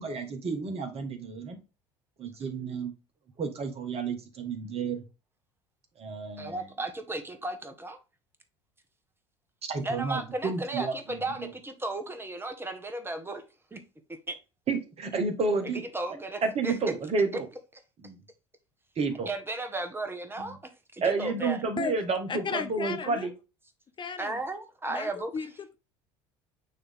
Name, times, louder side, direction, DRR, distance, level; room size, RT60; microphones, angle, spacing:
voice 1, 0.0-1.6 2.2-2.9 3.4-5.0 6.0-6.6 9.7-11.5 14.7-15.8 16.4-17.5 18.0-18.2 19.0-19.3 20.4-20.6 21.0-23.3, right 4 dB, 40° right, 1.8 m, -31 dB
voice 2, 6.4-8.0 9.8-13.4 13.7-13.8 14.1-14.3 15.7-16.8 19.3-20.6 20.9-21.6 24.2-25.3, right 2 dB, 15° right, 1.5 m, -35 dB
voice 3, 22.3-23.3 24.0-24.4 24.9-25.7, left 6 dB, 30° left, 0.8 m, -35 dB
9.0 x 3.3 x 3.7 m
hypercardioid pair, 70°, 15 cm